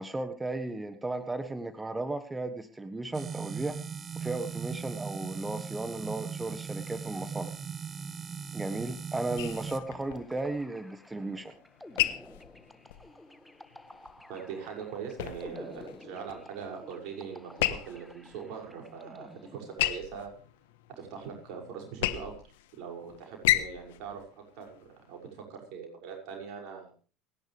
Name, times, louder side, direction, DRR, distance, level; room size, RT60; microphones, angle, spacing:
voice 1, 0.0-3.7 4.2-7.5 8.5-11.5, right 2 dB, 15° right, 10 dB, 1.5 m, -35 dB
sound 1, 3.1-9.8, right 6 dB, 35° right, 1.3 m, -39 dB
sound 2, 9.4-25.4, left 15 dB, 75° left, 1.2 m, -36 dB
sound 3, 9.7-20.2, left 1 dB, 5° left, 1.7 m, -51 dB
voice 2, 14.3-20.3 21.0-22.4 22.7-26.9, right 6 dB, 65° right, 2 dB, 6.3 m, -42 dB
28.5 x 11.0 x 3.4 m, 0.36 s
hypercardioid pair, 75°, 0 cm